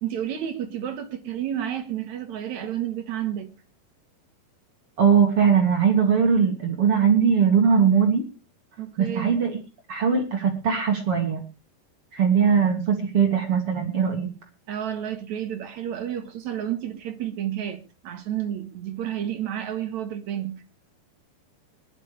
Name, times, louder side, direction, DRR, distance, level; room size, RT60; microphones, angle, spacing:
voice 1, 0.0-3.5 8.8-9.3 14.7-20.6, right 10 dB, 65° right, 1.9 m, -31 dB
voice 2, 5.0-8.3 9.0-9.6 9.9-11.4 12.1-14.3, right 6 dB, 50° right, 2.0 m, -20 dB
21.5 x 11.5 x 3.3 m
omnidirectional pair, 4.9 m